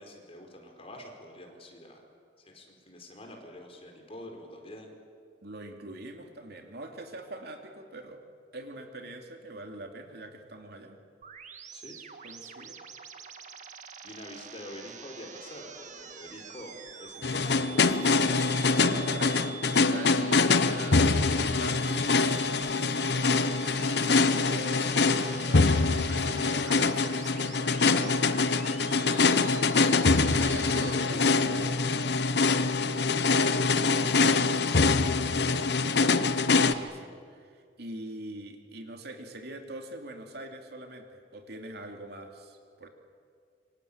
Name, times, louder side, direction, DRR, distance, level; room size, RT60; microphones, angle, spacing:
voice 1, 0.0-2.1 2.4-4.9 11.7-12.0 14.0-15.7 16.0-18.4 22.8-24.0 28.8-29.3 30.8-31.4 32.7-34.0, left 1 dB, 35° left, 2 dB, 4.8 m, -46 dB
voice 2, 5.4-8.2 8.5-11.0 12.2-12.8 18.8-22.1 24.4-28.3 30.3-32.2 34.0-34.8 35.8-42.9, right 2 dB, 65° right, 4 dB, 2.8 m, -44 dB
sound 1, 11.2-30.9, right 7 dB, 45° right, 1.7 m, -46 dB
sound 2, 17.2-36.7, left 4 dB, 65° left, 1.1 m, -24 dB
27.0 x 24.5 x 8.7 m, 2.2 s
head